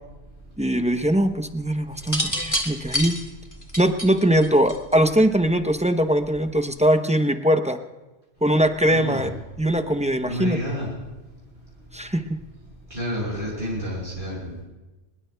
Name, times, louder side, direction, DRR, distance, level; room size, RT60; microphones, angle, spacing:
voice 1, 0.6-3.2 3.8-7.8 8.4-9.3 9.6-10.6 11.9-12.2, right 1 dB, 10° right, 7 dB, 0.6 m, -21 dB
sound 1, 2.0-5.1 6.2-6.6, equal, 15° left, 1.9 m, -28 dB
voice 2, 8.9-9.3 10.3-10.9 12.9-14.6, equal, 50° right, -7 dB, 6.5 m, -29 dB
24.5 x 21.0 x 2.2 m, 1.1 s
omnidirectional pair, 1.1 m